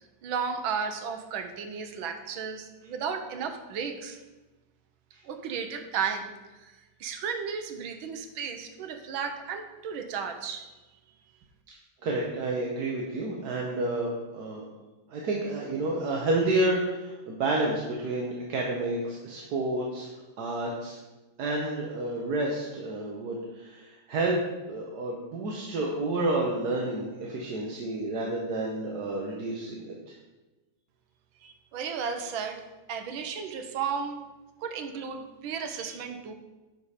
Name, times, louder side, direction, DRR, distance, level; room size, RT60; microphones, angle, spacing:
voice 1, 0.0-4.2 5.2-6.3 6.6-6.7 7.0-10.7 31.4-32.6 32.9-34.2 34.6-36.3, right 6 dB, 80° right, 6 dB, 1.6 m, -34 dB
voice 2, 12.0-14.6 15.1-20.1 20.4-21.0 21.4-24.4 24.7-29.9, right 2 dB, 60° right, -2 dB, 1.4 m, -30 dB
11.0 x 5.1 x 4.2 m, 1.1 s
omnidirectional pair, 2.2 m